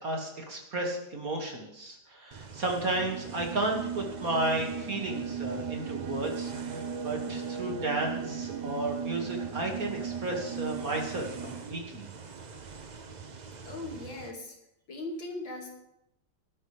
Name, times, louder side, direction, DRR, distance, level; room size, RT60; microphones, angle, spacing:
voice 1, 0.0-12.1, right 2 dB, 45° right, 1 dB, 2.5 m, -33 dB
sound 1, 2.3-14.3, right 5 dB, 80° right, 0.4 m, -46 dB
sound 2, 2.6-11.8, right 7 dB, 60° right, 1.7 m, -37 dB
voice 2, 13.6-14.5 14.9-15.7, left 2 dB, 70° left, 0 dB, 3.1 m, -39 dB
17.5 x 12.0 x 3.4 m, 0.83 s
omnidirectional pair, 2.1 m